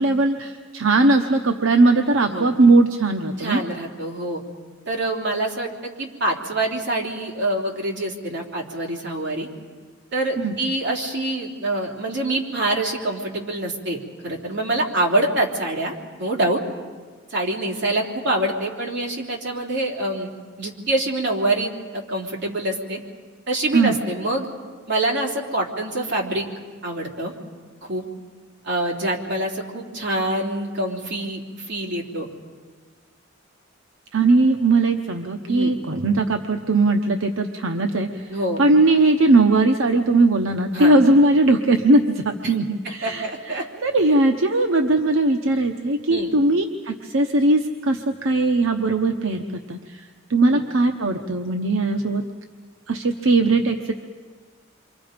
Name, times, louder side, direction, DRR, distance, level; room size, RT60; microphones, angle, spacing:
voice 1, 0.0-3.6 10.4-10.5 23.7-24.0 34.1-38.2 38.6-50.0 50.3-52.2 52.9-53.9, right 2 dB, 85° right, 5 dB, 1.0 m, -19 dB
voice 2, 3.4-4.4 4.9-9.5 10.1-16.6 17.3-20.3 20.6-23.0 23.5-24.5 24.9-26.5 26.8-27.3 27.8-28.0 28.6-32.3 35.5-35.7 38.3-38.6 40.7-40.9 42.4-42.5 42.8-43.9 46.1-46.3 50.5-50.6, right 1 dB, 60° right, 0 dB, 3.3 m, -25 dB
29.0 x 25.0 x 5.2 m, 1.5 s
head